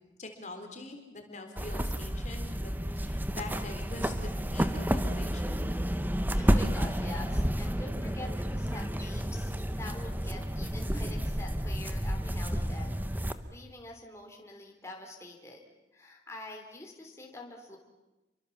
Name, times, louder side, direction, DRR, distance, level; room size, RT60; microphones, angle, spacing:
voice 1, 0.2-4.1 4.5-5.7, left 2 dB, 40° left, 4 dB, 3.6 m, -44 dB
sound 1, 1.6-13.3, equal, 10° right, 1.2 m, -31 dB
voice 2, 6.4-15.6 15.9-17.8, left 2 dB, 15° left, 1 dB, 3.7 m, -46 dB
30.0 x 24.0 x 7.3 m, 1.0 s
head